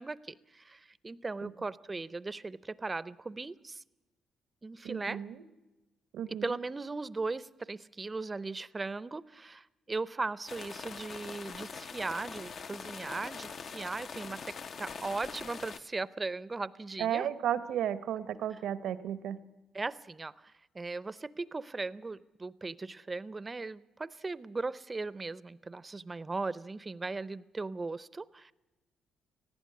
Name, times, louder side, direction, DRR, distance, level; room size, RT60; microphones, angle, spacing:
voice 1, 0.0-3.8 4.6-5.2 6.3-14.5 14.8-17.3 18.5-18.6 19.7-28.5, right 3 dB, 25° right, 18 dB, 0.6 m, -38 dB
voice 2, 4.8-5.3 6.1-6.5 17.0-19.4, right 10 dB, 80° right, 13 dB, 1.0 m, -33 dB
sound 1, 10.5-15.8, left 5 dB, 50° left, 0.8 m, -43 dB
18.5 x 15.0 x 9.5 m, 1.1 s
cardioid pair, 90°, 0 cm